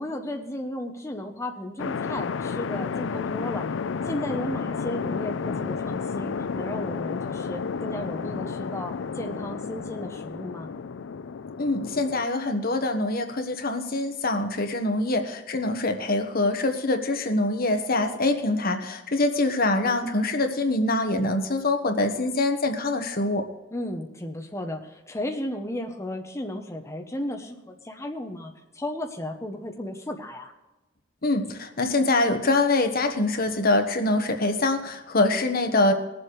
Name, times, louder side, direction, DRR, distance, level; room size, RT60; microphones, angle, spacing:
voice 1, 0.0-3.7 4.1-10.7 23.7-30.5, left 1 dB, 15° left, 2 dB, 1.1 m, -34 dB
sound 1, 1.8-12.3, left 5 dB, 80° left, 0.4 m, -31 dB
voice 2, 11.6-23.5 31.2-35.9, left 2 dB, 50° left, 6 dB, 1.3 m, -24 dB
20.5 x 7.7 x 4.7 m, 1.1 s
head